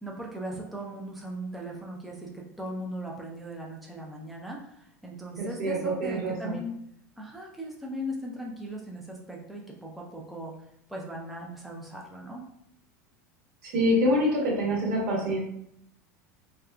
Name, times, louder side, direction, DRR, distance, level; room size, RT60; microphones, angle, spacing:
voice 1, 0.0-6.7 7.2-10.5 10.9-12.4, equal, ahead, -2 dB, 0.5 m, -38 dB
voice 2, 5.4-6.6 13.6-15.4, equal, 65° right, -3 dB, 1.2 m, -26 dB
3.5 x 2.2 x 2.3 m, 0.74 s
hypercardioid pair, 95°, 9 cm